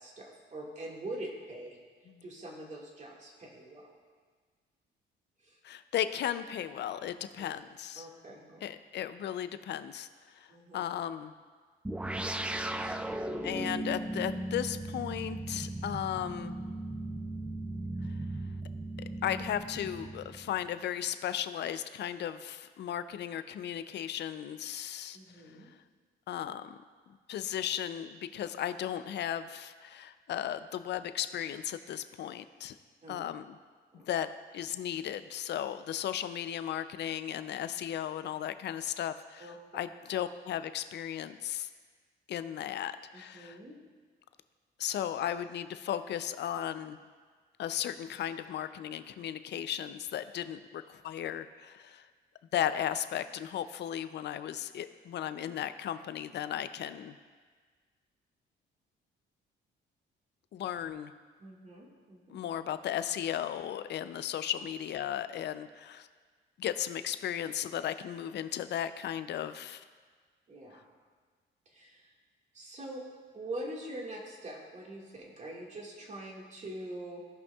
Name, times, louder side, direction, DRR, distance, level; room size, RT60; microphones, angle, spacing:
voice 1, 0.0-1.8 2.2-3.9 5.4-5.6 8.0-8.6 10.5-10.8 12.7-13.0 25.1-25.7 33.0-33.1 33.9-34.1 39.4-39.6 43.1-43.8 61.4-62.4 70.5-70.8 71.7-72.1 72.5-73.0 73.3-77.3, right 1 dB, 35° right, -1 dB, 1.8 m, -44 dB
voice 2, 5.6-8.1 8.6-10.5 10.7-11.3 13.4-16.5 18.0-18.1 19.2-25.2 26.3-26.8 27.1-32.8 33.1-33.6 33.9-34.3 34.5-41.7 42.3-43.6 44.8-47.0 47.6-52.1 52.5-57.2 60.5-61.1 62.3-66.1 66.6-69.8, left 10 dB, 60° left, 12 dB, 0.5 m, -35 dB
sound 1, 11.8-20.7, right 1 dB, 5° right, 0.3 m, -37 dB
16.0 x 5.4 x 2.3 m, 1.5 s
cardioid pair, 90°, 20 cm